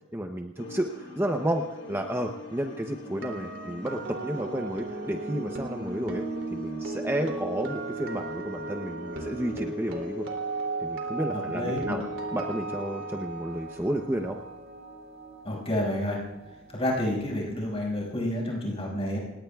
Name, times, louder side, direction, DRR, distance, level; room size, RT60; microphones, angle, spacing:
voice 1, 0.1-6.2 6.5-10.3 10.8-12.0 12.3-14.4, right 1 dB, 10° right, 3 dB, 0.7 m, -31 dB
sound 1, 0.6-15.2, left 3 dB, 65° left, 2.9 m, -47 dB
sound 2, 3.0-17.1 17.3-17.6, right 2 dB, 80° right, 2.8 m, -36 dB
voice 2, 11.3-11.9 15.4-16.2 16.7-19.2, left 1 dB, 30° left, -4 dB, 5.8 m, -29 dB
29.0 x 18.0 x 2.3 m, 1.1 s
head